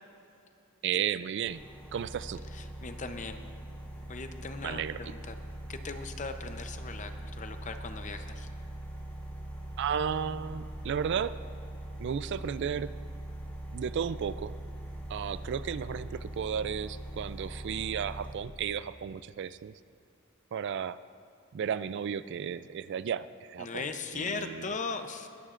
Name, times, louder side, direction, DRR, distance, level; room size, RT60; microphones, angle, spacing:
voice 1, 0.8-1.6 1.9-2.4 4.6-5.0 9.8-11.3 12.0-12.9 13.7-14.5 15.1-19.7 20.5-21.0 21.5-23.7 24.1-24.7, right 8 dB, 55° right, 15 dB, 0.3 m, -33 dB
sound 1, 1.4-18.3, right 1 dB, 10° left, 2.3 m, -42 dB
voice 2, 2.5-3.4 4.1-5.4 5.7-8.5 23.6-25.3, left 4 dB, 35° left, 7 dB, 0.7 m, -38 dB
20.0 x 14.0 x 2.5 m, 2.6 s
head